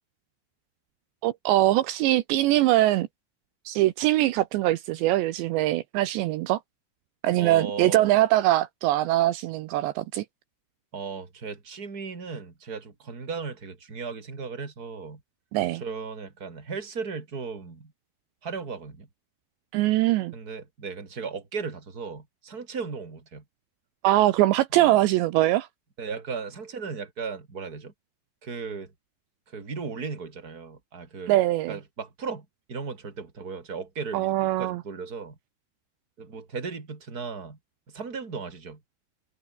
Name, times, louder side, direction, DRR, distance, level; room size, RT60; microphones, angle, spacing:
voice 1, 1.2-3.1 3.7-6.6 7.2-10.2 15.5-15.8 19.7-20.3 24.0-25.7 31.3-31.8 34.1-34.8, right 15 dB, 80° right, 3.0 m, -22 dB
voice 2, 7.4-8.1 10.9-15.2 15.7-17.9 18.4-19.1 20.3-23.4 24.7-25.0 26.0-27.9 28.4-28.9 29.5-31.4 31.7-35.4 36.2-37.6 37.9-38.8, right 5 dB, 20° right, 3.7 m, -36 dB
omnidirectional pair, 5.3 m